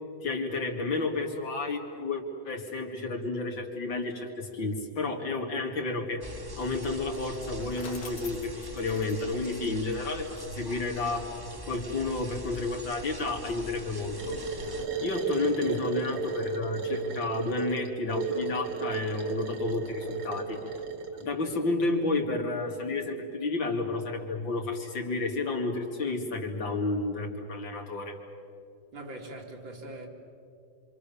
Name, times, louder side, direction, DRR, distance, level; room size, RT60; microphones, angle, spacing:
voice 1, 0.2-6.2 6.6-11.3 11.7-14.4 15.0-20.6 21.2-28.2, left 3 dB, 85° left, 3.5 m, -31 dB
sound 1, 6.2-14.9, right 1 dB, 15° right, 1.1 m, -43 dB
Bicycle, 7.2-10.4, left 4 dB, 70° left, 2.5 m, -48 dB
sound 2, 14.2-21.3, right 4 dB, 65° right, 2.6 m, -34 dB
voice 2, 28.9-30.1, right 1 dB, 85° right, 3.6 m, -42 dB
27.0 x 26.5 x 7.1 m
omnidirectional pair, 2.0 m